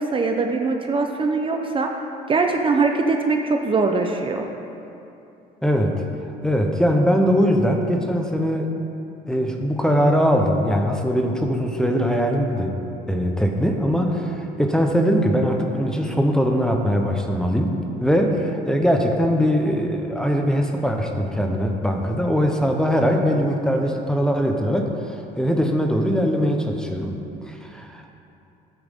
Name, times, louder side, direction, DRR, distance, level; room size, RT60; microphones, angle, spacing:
voice 1, 0.0-1.9 2.3-4.5, right 3 dB, 30° right, 3 dB, 0.7 m, -22 dB
voice 2, 5.6-6.1 6.4-8.7 9.3-12.8 13.1-28.1, equal, 5° left, 2 dB, 1.0 m, -21 dB
13.5 x 8.7 x 3.7 m, 2.8 s
cardioid pair, 110°, 17 cm